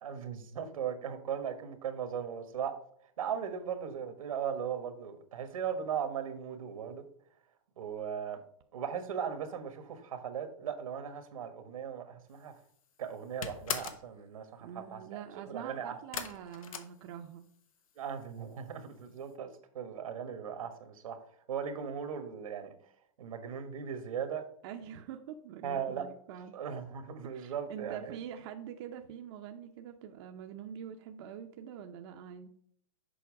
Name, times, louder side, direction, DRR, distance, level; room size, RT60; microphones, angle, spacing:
voice 1, 0.0-2.8 3.2-7.0 7.8-8.4 8.7-12.5 13.0-15.2 15.5-16.0 18.0-19.5 19.7-21.2 21.5-22.7 23.2-24.4 25.6-26.1 26.5-28.2, right 8 dB, 90° right, 8 dB, 1.4 m, -38 dB
sound 1, 12.4-12.8 13.1-14.1 16.1-17.6 17.9-18.5 18.8-18.9 19.3-19.4, left 7 dB, 85° left, 1.0 m, -39 dB
voice 2, 14.6-17.5 24.6-26.5 27.3-32.5, right 9 dB, 50° right, 4 dB, 0.7 m, -45 dB
7.0 x 4.5 x 4.6 m, 0.65 s
supercardioid pair, 150°, 17 cm